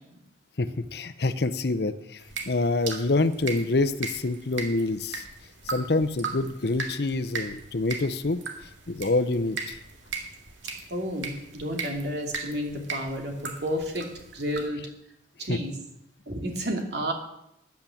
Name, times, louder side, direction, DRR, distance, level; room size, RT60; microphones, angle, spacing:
voice 1, 0.6-5.2 5.7-8.4 8.9-9.8 15.5-15.6, left 2 dB, 60° left, 11 dB, 0.7 m, -26 dB
sound 1, 2.2-14.7, right 4 dB, 90° right, 2.1 m, -38 dB
voice 2, 10.9-14.9 15.5-15.7 16.3-17.1, equal, 60° right, 1 dB, 2.8 m, -31 dB
10.5 x 9.4 x 7.2 m, 0.82 s
head